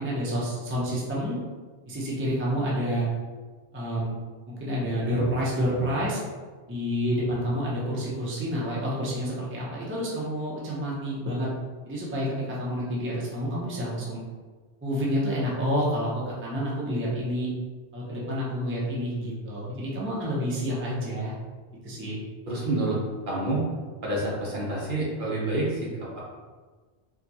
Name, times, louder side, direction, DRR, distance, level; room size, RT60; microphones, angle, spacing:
voice 1, 0.0-1.4 1.9-3.1 3.7-4.2 4.5-6.2 6.7-11.5 11.8-14.2 14.8-17.5 17.9-21.3 21.8-22.2, equal, 15° right, -6 dB, 0.6 m, -29 dB
voice 2, 22.5-23.0 23.3-23.6 24.0-26.2, right 2 dB, 55° right, -4 dB, 0.9 m, -28 dB
4.6 x 2.3 x 2.8 m, 1.4 s
omnidirectional pair, 1.1 m